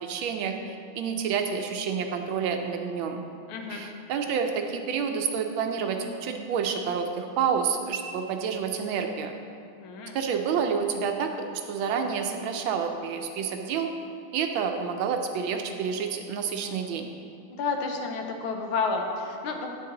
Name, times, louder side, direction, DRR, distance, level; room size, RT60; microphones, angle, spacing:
voice 1, 0.0-3.2 3.7-9.3 10.1-13.9 14.3-17.1, right 6 dB, 75° right, 5 dB, 1.3 m, -29 dB
voice 2, 3.5-3.9 9.8-10.2 17.5-19.7, left 4 dB, 75° left, 3 dB, 1.6 m, -30 dB
8.6 x 6.6 x 3.8 m, 2.5 s
omnidirectional pair, 2.4 m